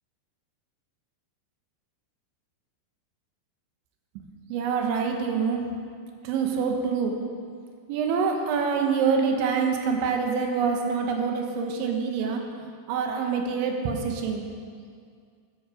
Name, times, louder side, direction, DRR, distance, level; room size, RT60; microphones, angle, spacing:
voice 1, 4.5-5.6 6.3-7.2 7.9-12.4 12.9-14.4, right 5 dB, 85° right, 2 dB, 3.4 m, -26 dB
13.0 x 11.0 x 4.9 m, 2.1 s
omnidirectional pair, 5.2 m